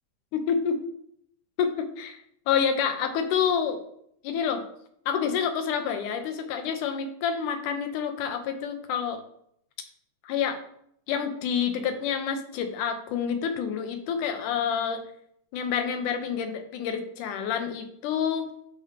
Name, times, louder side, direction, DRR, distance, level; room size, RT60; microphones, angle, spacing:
voice 1, 0.3-0.8 1.6-2.2 2.5-3.8 4.2-4.6 5.1-9.2 10.2-10.6 11.1-15.0 15.5-18.5, left 7 dB, 90° left, 7 dB, 2.4 m, -28 dB
10.5 x 4.3 x 3.4 m, 0.70 s
omnidirectional pair, 3.5 m